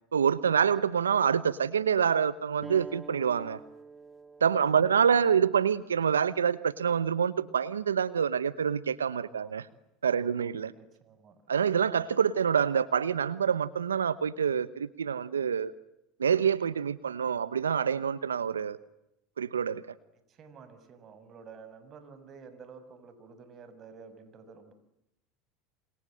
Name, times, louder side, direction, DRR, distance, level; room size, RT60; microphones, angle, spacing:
voice 1, 0.1-3.6 4.4-9.7 10.0-10.7 11.5-15.7 16.2-18.8 19.4-20.0, right 7 dB, 90° right, 17 dB, 1.0 m, -26 dB
sound 1, 2.6-7.8, right 3 dB, 15° right, 2.3 m, -49 dB
voice 2, 4.5-5.5 9.2-9.7 10.1-12.1 20.3-24.7, right 5 dB, 40° right, 10 dB, 6.4 m, -52 dB
27.5 x 27.5 x 7.7 m, 0.83 s
hypercardioid pair, 80°, 0 cm